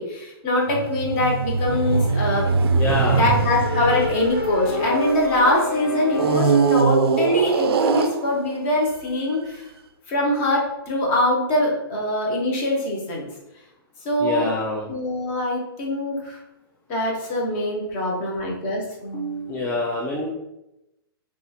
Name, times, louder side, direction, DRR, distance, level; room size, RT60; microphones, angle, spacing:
voice 1, 0.0-2.4 2.9-9.6 10.1-13.2 14.0-14.5 14.9-16.4 16.9-19.8, left 1 dB, 30° left, -2 dB, 1.0 m, -23 dB
sound 1, 0.7-5.4 6.1-8.7 9.3-9.5, right 5 dB, 85° right, 0.4 m, -22 dB
voice 2, 2.7-3.3 14.2-14.9 19.5-20.3, left 2 dB, 10° left, -4 dB, 0.3 m, -26 dB
sound 2, 2.9-6.9, left 2 dB, 65° left, 0.9 m, -28 dB
2.7 x 2.4 x 4.2 m, 0.90 s
hypercardioid pair, 150°, 13 cm